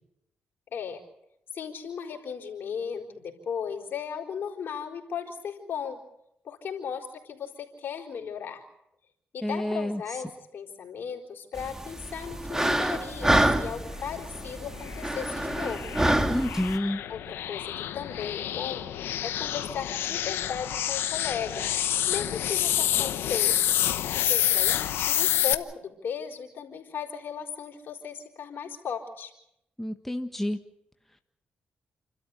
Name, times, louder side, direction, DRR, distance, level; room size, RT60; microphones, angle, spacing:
voice 1, 0.7-1.0 1.5-6.0 6.4-8.6 9.3-16.0 17.1-18.8 19.2-21.7 22.1-23.8 24.3-29.3, left 7 dB, 70° left, 2 dB, 4.2 m, -36 dB
voice 2, 9.4-10.0 16.3-17.0 29.8-30.6, left 1 dB, 5° left, 6 dB, 1.6 m, -29 dB
sound 1, 11.6-16.8, right 1 dB, 15° right, 2.1 m, -27 dB
sound 2, 14.0-25.5, left 11 dB, 90° left, 1.0 m, -28 dB
29.0 x 13.0 x 8.2 m, 0.81 s
cardioid pair, 70°, 4 cm